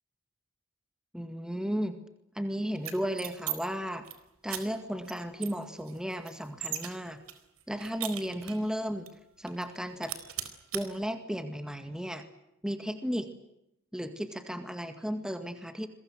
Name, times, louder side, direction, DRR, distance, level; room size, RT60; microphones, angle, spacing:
voice 1, 1.1-2.0 2.3-4.1 4.4-7.2 7.7-9.1 9.4-10.2 10.7-12.3 12.6-13.3 13.9-15.9, equal, 5° right, 8 dB, 2.0 m, -34 dB
sound 1, 2.8-3.6 3.9-4.1 4.5-4.6 5.0-5.1 5.4-6.9 7.3-8.7 9.1-9.2 9.5-9.8 10.0-10.8, right 11 dB, 85° right, 4.2 m, -37 dB
27.5 x 22.5 x 7.8 m, 0.83 s
head